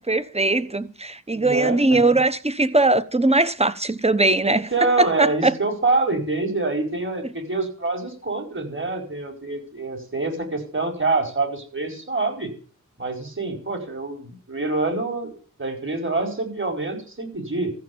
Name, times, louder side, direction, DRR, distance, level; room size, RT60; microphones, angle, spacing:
voice 1, 0.1-5.6, right 2 dB, 20° right, 1.0 m, -20 dB
voice 2, 1.3-2.0 4.4-12.5 13.0-15.3 15.6-17.7, right 3 dB, 40° right, 4.8 m, -26 dB
14.5 x 6.9 x 8.7 m
wide cardioid pair, 60°, 32 cm